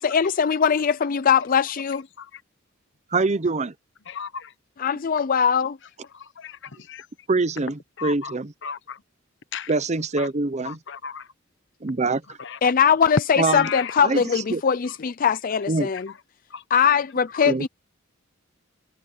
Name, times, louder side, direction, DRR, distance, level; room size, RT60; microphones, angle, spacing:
voice 1, 0.0-2.0 4.8-5.8 12.6-16.1 16.7-17.7, left 7 dB, 45° left, 0.5 m, -21 dB
voice 2, 3.1-3.7 7.3-8.5 9.7-10.8 11.8-12.4 13.4-13.7 14.0-14.6 15.7-15.9 17.5-17.7, right 3 dB, 35° right, 0.7 m, -24 dB
voice 3, 4.1-4.5 6.4-6.5 6.9-7.0 8.0-8.3 8.6-9.0 9.5-9.7 10.2-10.3 10.7-11.2 13.5-13.9 16.5-16.6, left 7 dB, 65° left, 1.2 m, -34 dB
head